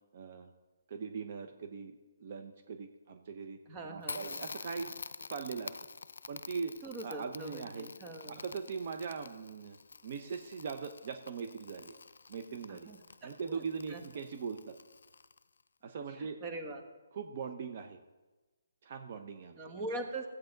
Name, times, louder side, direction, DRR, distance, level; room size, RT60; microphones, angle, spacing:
voice 1, 0.1-0.5 0.9-3.6 3.9-4.9 5.3-5.7 6.3-6.7 7.0-7.9 8.3-9.8 10.0-11.9 12.3-12.9 13.2-14.7 15.8-16.4 17.1-18.0 18.8-19.6, right 5 dB, 45° right, 6 dB, 0.8 m, -40 dB
voice 2, 3.7-4.4 6.8-8.4 12.7-13.6 13.9-14.0 16.2-16.8 19.6-20.3, right 2 dB, 20° right, 6 dB, 1.1 m, -42 dB
Crackle, 4.0-15.6, left 4 dB, 75° left, 0.4 m, -48 dB
15.5 x 8.3 x 3.9 m, 1.2 s
hypercardioid pair, 160°, 0 cm